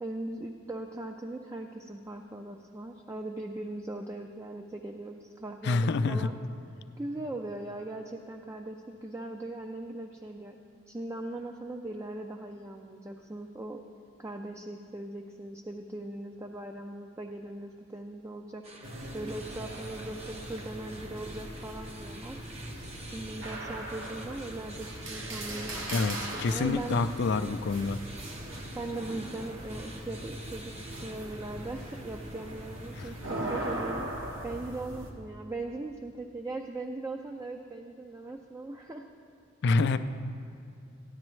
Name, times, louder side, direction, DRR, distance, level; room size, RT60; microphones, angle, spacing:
voice 1, 0.0-6.3 6.8-10.6 10.9-13.8 14.2-18.6 19.1-27.0 28.8-34.1 34.4-39.1, right 2 dB, 15° right, 3 dB, 0.3 m, -39 dB
voice 2, 5.6-6.3 25.9-28.0 39.6-40.0, left 3 dB, 60° left, 10 dB, 0.4 m, -27 dB
sound 1, 18.6-33.4, right 2 dB, 35° right, 0.9 m, -48 dB
sound 2, 18.8-35.1, right 1 dB, 85° right, 1.1 m, -40 dB
14.0 x 10.5 x 3.1 m, 2.5 s
head